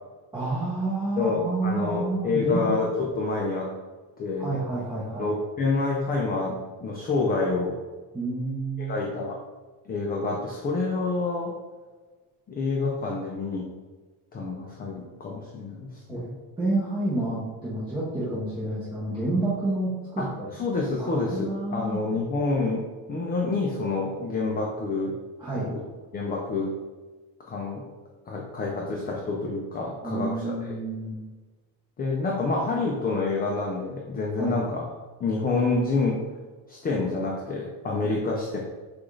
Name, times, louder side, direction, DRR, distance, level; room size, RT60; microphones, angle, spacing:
voice 1, 0.3-2.7 4.4-5.3 8.1-9.1 16.1-16.2 16.6-20.5 21.0-22.0 25.4-25.7 30.0-31.2 34.4-34.6, right 2 dB, 10° right, -9 dB, 0.8 m, -29 dB
voice 2, 1.2-3.7 4.2-4.6 5.2-7.7 8.8-9.4 9.8-11.5 12.5-13.7 14.3-16.4 20.2-20.3 20.5-25.2 25.5-25.8 26.1-26.7 27.5-27.8 28.3-30.6 32.0-34.8 35.2-36.2 36.7-38.6, left 3 dB, 25° left, -1 dB, 0.4 m, -28 dB
6.0 x 2.5 x 3.2 m, 1.3 s
cardioid pair, 150°, 41 cm